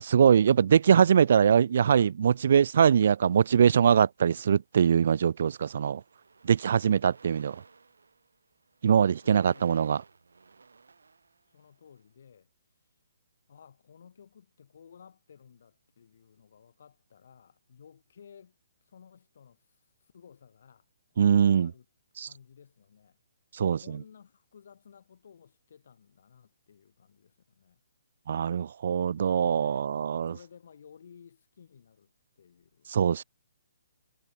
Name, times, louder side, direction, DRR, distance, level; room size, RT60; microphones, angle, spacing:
voice 1, 0.0-6.0 6.4-7.6 8.8-10.0 21.2-21.7 22.2-22.3 23.5-23.8 28.3-30.3 32.9-33.2, right 8 dB, 55° right, 0.5 m, -22 dB
sound 1, 3.2-4.2 5.0-5.2 5.5-12.0, right 4 dB, 75° right, 7.1 m, -57 dB
voice 2, 9.2-9.8 11.5-12.5 12.8-12.9 13.5-18.6 18.8-20.9 21.2-21.9 22.2-23.2 23.6-27.8 29.5-32.9, left 7 dB, 55° left, 7.3 m, -56 dB
figure-of-eight pair, 135°, 0 cm